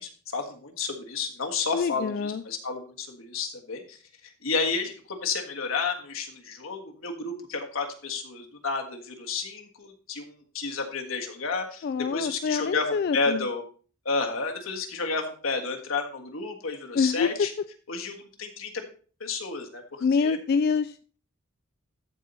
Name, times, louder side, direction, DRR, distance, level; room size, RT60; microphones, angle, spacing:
voice 1, 0.0-11.9 12.1-13.6 14.0-17.5 17.9-18.8 19.2-20.4, left 4 dB, 85° left, 3 dB, 1.6 m, -31 dB
voice 2, 1.7-2.4 11.8-13.5 16.9-17.5 20.0-21.2, left 5 dB, 50° left, 11 dB, 0.3 m, -26 dB
13.5 x 4.6 x 4.1 m, 0.40 s
head